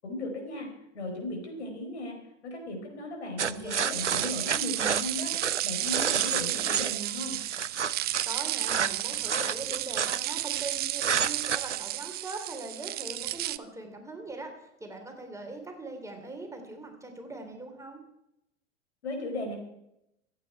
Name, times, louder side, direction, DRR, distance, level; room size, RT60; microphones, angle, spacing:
voice 1, 0.0-0.7 0.9-2.2 2.4-7.4 19.0-19.6, left 1 dB, 70° left, 3 dB, 4.7 m, -36 dB
voice 2, 3.4-3.9 6.3-6.6 8.2-18.0, right 2 dB, 10° right, 3 dB, 3.1 m, -41 dB
sound 1, 3.4-6.9 7.4-10.6 11.0-11.8, right 7 dB, 90° right, 0.6 m, -30 dB
sound 2, 3.9-13.6, right 15 dB, 30° right, 0.6 m, -32 dB
26.0 x 8.8 x 4.6 m, 0.83 s
figure-of-eight pair, 85°, 34 cm